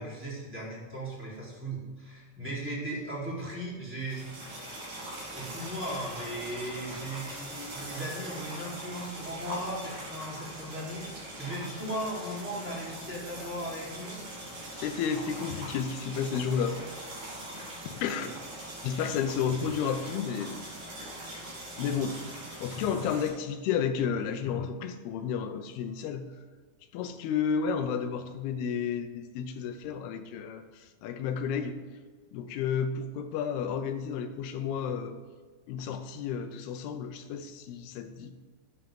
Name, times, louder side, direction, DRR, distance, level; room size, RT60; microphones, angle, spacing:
voice 1, 0.0-4.2 5.3-11.1 11.4-14.2 18.1-18.2, right 1 dB, 5° right, -6 dB, 3.1 m, -37 dB
sound 1, 4.0-23.3, right 1 dB, 60° right, 5.9 m, -42 dB
voice 2, 14.7-16.9 17.6-18.3 18.8-20.6 21.8-22.2 22.6-26.3 26.9-31.8 32.3-35.2 35.7-38.3, left 7 dB, 75° left, 8 dB, 2.5 m, -32 dB
13.0 x 10.5 x 3.8 m, 1.4 s
omnidirectional pair, 5.1 m